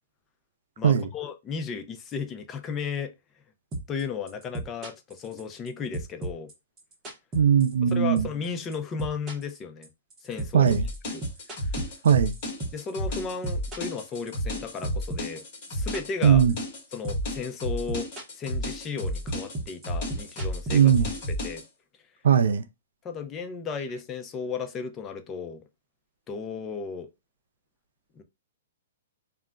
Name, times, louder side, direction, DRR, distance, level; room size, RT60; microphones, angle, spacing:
voice 1, 0.8-3.1 3.9-6.5 7.9-9.9 10.2-10.7 11.1-11.2 12.7-16.4 16.9-20.9 21.4-21.6 23.0-25.6 26.3-27.1 28.2-28.3, left 5 dB, 20° left, 0.4 m, -34 dB
sound 1, 3.7-4.0 4.3-5.7 5.9-7.9 8.2-8.5 8.7-12.9 13.2-14.6 14.8-16.8 17.0-17.3 17.6-18.5 18.7-21.3, right 1 dB, 20° right, 0.7 m, -34 dB
voice 2, 7.3-8.3 10.5-10.9 12.0-12.3 16.2-16.5 20.7-21.1 22.2-22.6, right 8 dB, 75° right, 0.4 m, -19 dB
sound 2, 10.7-21.6, equal, 40° left, 1.0 m, -32 dB
2.3 x 2.0 x 3.6 m
hypercardioid pair, 150°, 0 cm